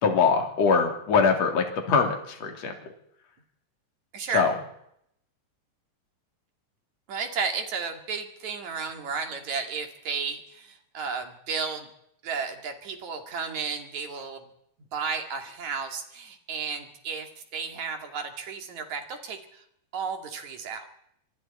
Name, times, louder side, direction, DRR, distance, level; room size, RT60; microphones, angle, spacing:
voice 1, 0.0-2.7 4.3-4.5, left 5 dB, 50° left, 3 dB, 4.0 m, -23 dB
voice 2, 4.1-4.5 7.1-11.9 12.2-14.4 14.9-19.6 19.9-20.9, right 5 dB, 55° right, 5 dB, 3.6 m, -33 dB
26.5 x 23.5 x 4.3 m, 0.73 s
omnidirectional pair, 4.0 m